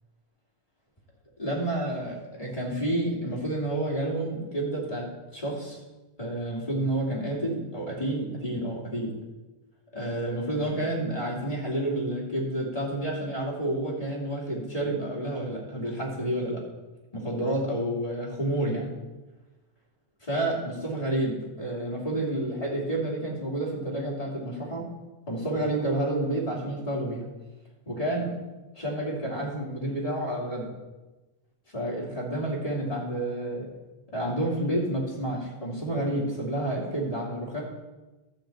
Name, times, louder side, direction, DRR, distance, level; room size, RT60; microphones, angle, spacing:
voice 1, 1.4-5.8 6.2-9.1 9.9-16.6 17.1-18.9 20.3-24.8 25.3-27.2 27.9-28.3 28.7-30.7 31.7-33.7 34.1-37.6, right 1 dB, 15° left, -3 dB, 2.3 m, -29 dB
12.5 x 4.4 x 7.8 m, 1.1 s
omnidirectional pair, 3.4 m